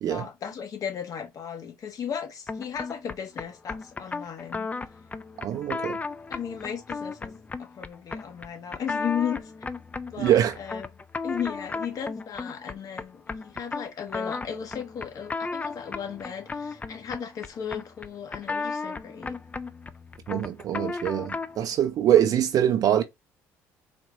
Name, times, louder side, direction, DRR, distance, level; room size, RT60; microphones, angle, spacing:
voice 1, 0.1-4.7 6.3-9.5 10.0-10.9 11.2-19.4, left 8 dB, 50° left, 1.3 m, -35 dB
sound 1, 2.5-21.7, left 4 dB, 20° left, 0.4 m, -35 dB
voice 2, 5.4-6.0 10.2-10.6 20.3-23.0, right 10 dB, 60° right, 0.6 m, -23 dB
4.2 x 2.6 x 3.0 m
supercardioid pair, 70°, 7 cm